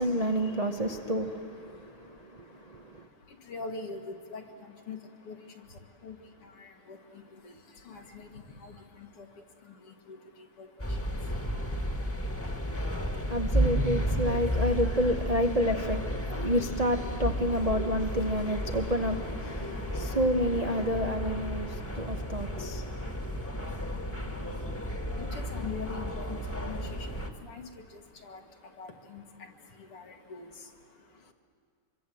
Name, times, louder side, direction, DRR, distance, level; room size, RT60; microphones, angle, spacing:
voice 1, 0.0-3.0 12.6-23.8 24.2-24.8, equal, 85° right, 0.3 m, -30 dB
voice 2, 1.6-13.6 21.5-31.3, left 4 dB, 85° left, 2.7 m, -46 dB
sound 1, 10.8-27.3, equal, 5° left, 1.3 m, -33 dB
25.5 x 23.5 x 7.7 m
omnidirectional pair, 2.4 m